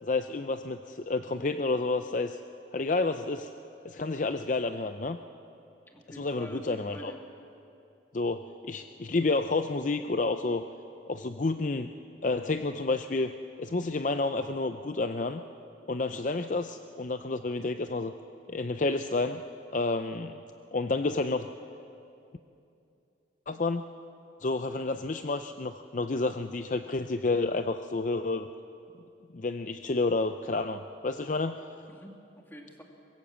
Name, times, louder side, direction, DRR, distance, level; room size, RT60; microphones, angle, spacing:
voice 1, 0.0-2.4 2.7-3.5 3.8-5.2 6.1-7.1 8.1-10.6 11.1-11.9 12.2-13.3 13.6-15.4 15.9-18.1 18.5-19.4 19.7-20.4 20.7-21.5 23.5-23.8 24.4-28.5 29.3-31.6, left 3 dB, 45° left, 8 dB, 0.5 m, -30 dB
voice 2, 5.9-7.2 31.9-32.8, equal, 10° left, 2 dB, 2.1 m, -46 dB
24.0 x 20.5 x 7.4 m, 2.7 s
head